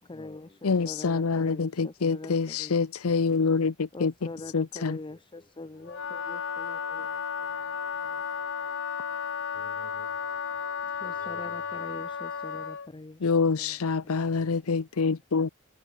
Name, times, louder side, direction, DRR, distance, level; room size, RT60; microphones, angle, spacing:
voice 1, 0.0-2.8 3.9-8.2 9.5-10.2 10.8-13.3 13.6-13.8 14.0-14.3, left 2 dB, 25° left, 0.6 m, -44 dB
voice 2, 0.6-4.1 4.5-5.0 13.2-15.5, left 4 dB, 75° left, 0.7 m, -26 dB
Wind instrument woodwind instrument, 5.8-12.9, left 6 dB, 60° left, 1.1 m, -33 dB
voice 3, 7.4-11.3, equal, 5° left, 5.1 m, -68 dB
head